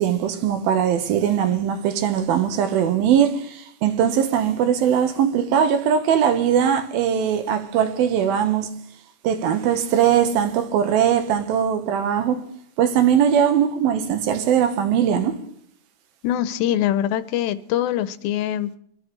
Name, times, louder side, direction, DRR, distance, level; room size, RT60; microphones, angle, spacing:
voice 1, 0.0-8.7 9.2-12.4 12.8-15.4, right 8 dB, 80° right, 2.8 m, -20 dB
voice 2, 16.2-18.8, left 11 dB, 80° left, 2.4 m, -23 dB
23.5 x 12.0 x 3.2 m
omnidirectional pair, 4.3 m